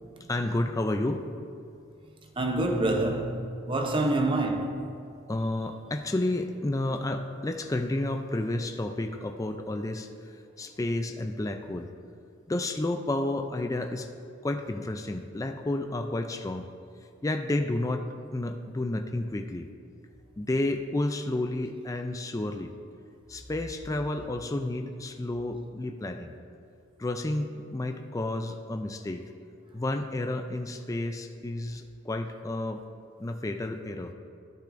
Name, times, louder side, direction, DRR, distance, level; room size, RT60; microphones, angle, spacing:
voice 1, 0.3-1.3 5.3-11.9 12.5-14.1 14.4-16.7 17.2-19.7 20.4-22.7 23.3-26.3 27.0-29.3 29.7-32.8 33.2-34.1, left 1 dB, 15° left, 0.3 m, -31 dB
voice 2, 2.4-4.9, right 2 dB, 25° right, 0.6 m, -27 dB
13.5 x 8.8 x 2.6 m
head